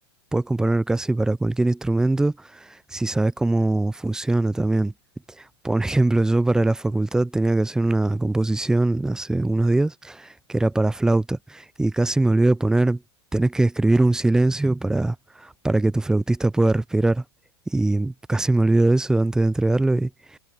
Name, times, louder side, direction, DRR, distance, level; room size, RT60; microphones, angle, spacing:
voice 1, 0.3-2.3 2.9-4.9 5.6-13.0 13.3-17.2 17.7-20.4, right 2 dB, 5° right, 0.3 m, -21 dB
hypercardioid pair, 100°, 14 cm